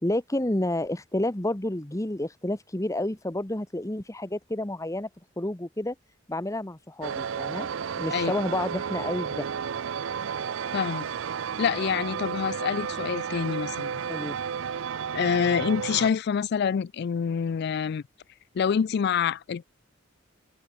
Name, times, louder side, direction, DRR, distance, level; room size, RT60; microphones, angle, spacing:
voice 1, 0.0-5.1 5.4-5.9 6.3-7.7 8.0-9.5 14.1-14.4, left 1 dB, 15° left, 1.2 m, -30 dB
sound 1, 7.0-16.1, right 7 dB, 80° right, 0.5 m, -32 dB
voice 2, 10.7-11.0 11.6-14.0 15.1-18.0 18.5-19.6, left 7 dB, 55° left, 0.3 m, -26 dB
head